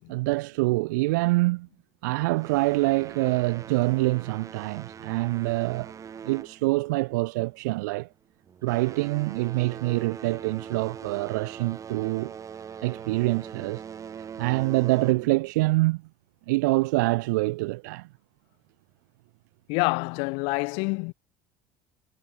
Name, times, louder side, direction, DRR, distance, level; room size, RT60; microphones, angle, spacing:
voice 1, 0.1-1.7 2.0-5.9 6.2-8.1 8.6-12.3 12.8-13.8 14.4-16.0 16.5-18.1, right 22 dB, 85° right, 1.1 m, -25 dB
sound 1, 2.3-7.2 7.5-7.9 8.4-15.5, right 7 dB, 35° right, 3.8 m, -42 dB
voice 2, 19.7-21.1, left 32 dB, 75° left, 4.5 m, -27 dB
supercardioid pair, 95°, 10 cm